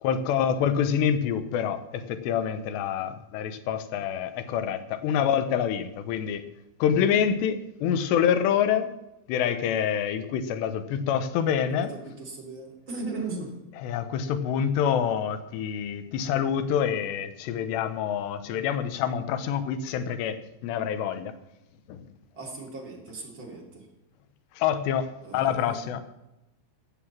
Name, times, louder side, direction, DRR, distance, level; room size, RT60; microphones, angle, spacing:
voice 1, 0.0-6.4 6.8-8.9 9.3-11.9 13.8-20.4 20.6-21.3 21.9-22.0 24.6-25.1 25.3-26.0, left 8 dB, 75° left, 9 dB, 2.8 m, -26 dB
voice 2, 11.7-13.5 22.4-23.8 25.2-25.8, right 3 dB, 30° right, -2 dB, 2.8 m, -37 dB
16.0 x 6.9 x 7.3 m, 0.93 s
omnidirectional pair, 5.5 m